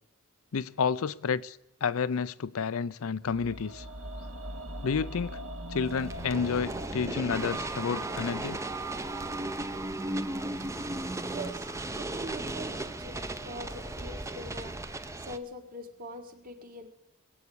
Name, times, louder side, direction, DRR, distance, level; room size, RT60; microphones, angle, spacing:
voice 1, 0.5-3.9 4.8-5.4 5.7-8.6, left 6 dB, 75° left, 0.5 m, -30 dB
sound 1, 3.2-13.3 13.6-13.7, equal, 70° right, 1.7 m, -44 dB
sound 2, 5.8-15.4, right 2 dB, 15° right, 0.6 m, -36 dB
voice 2, 10.6-16.9, right 1 dB, 40° right, 1.7 m, -43 dB
21.0 x 8.1 x 8.5 m
head